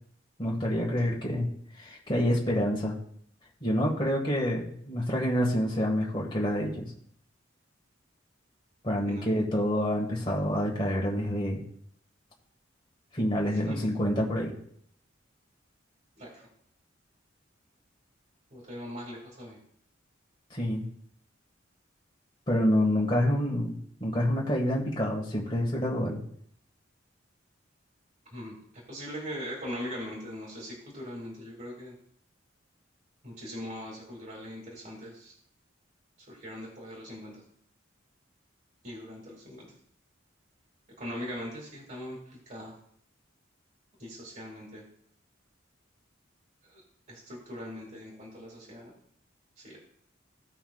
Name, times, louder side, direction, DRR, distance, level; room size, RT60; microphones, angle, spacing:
voice 1, 0.4-1.5 1.8-3.0 3.6-6.9 8.8-11.6 13.1-14.5 20.5-20.8 22.5-26.2, equal, 25° left, -3 dB, 1.6 m, -27 dB
voice 2, 9.0-9.4 13.5-13.8 16.2-16.5 18.5-19.6 28.3-32.0 33.2-35.3 36.2-37.4 38.8-39.7 41.0-42.8 44.0-44.9 46.6-46.8 47.1-48.9 49.6-49.8, equal, 40° right, -3 dB, 2.2 m, -41 dB
16.5 x 5.7 x 2.3 m, 0.65 s
head